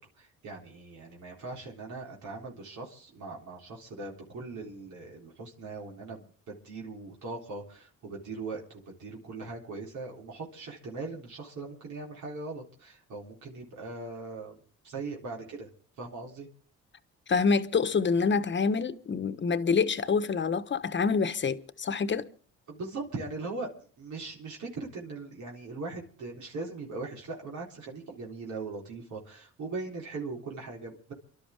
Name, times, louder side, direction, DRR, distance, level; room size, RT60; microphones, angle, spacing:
voice 1, 0.2-8.6 9.0-14.6 14.8-15.7 16.0-16.5 22.7-23.7 24.0-31.1, right 3 dB, 70° right, 3.9 m, -40 dB
voice 2, 17.3-22.3, left 5 dB, 40° left, 1.2 m, -26 dB
29.0 x 12.0 x 3.6 m
cardioid pair, 90°, 30 cm